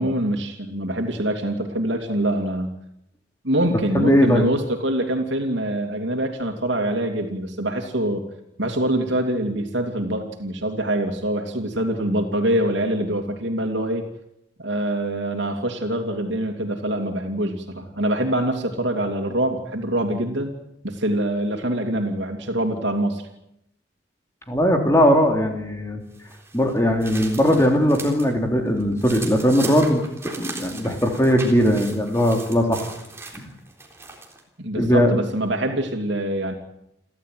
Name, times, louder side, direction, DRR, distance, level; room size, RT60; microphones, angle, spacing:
voice 1, 0.0-2.7 3.4-8.2 8.6-14.0 14.6-20.5 20.8-23.3 34.6-36.5, right 1 dB, 85° right, 3 dB, 2.9 m, -24 dB
voice 2, 3.9-4.5 24.5-26.0 26.5-32.9 33.3-33.4 34.7-35.1, equal, 15° left, 2 dB, 3.4 m, -19 dB
sound 1, 26.1-28.3 28.7-34.4, right 3 dB, 15° right, 3.8 m, -38 dB
29.5 x 12.5 x 9.4 m, 0.81 s
head